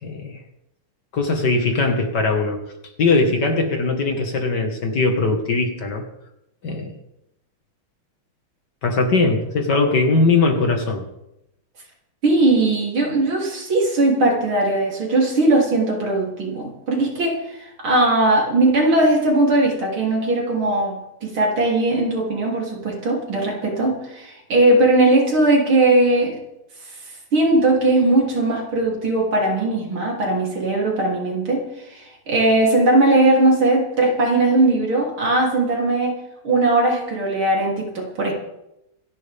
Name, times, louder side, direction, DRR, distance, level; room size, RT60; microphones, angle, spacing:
voice 1, 0.0-0.4 1.1-2.6 3.0-6.0 6.6-6.9 8.8-11.0, left 3 dB, 50° left, 4 dB, 2.2 m, -20 dB
voice 2, 12.2-26.4 27.3-31.6 31.9-38.3, right 2 dB, 65° right, -2 dB, 4.1 m, -19 dB
26.5 x 11.0 x 3.6 m, 0.86 s
omnidirectional pair, 2.4 m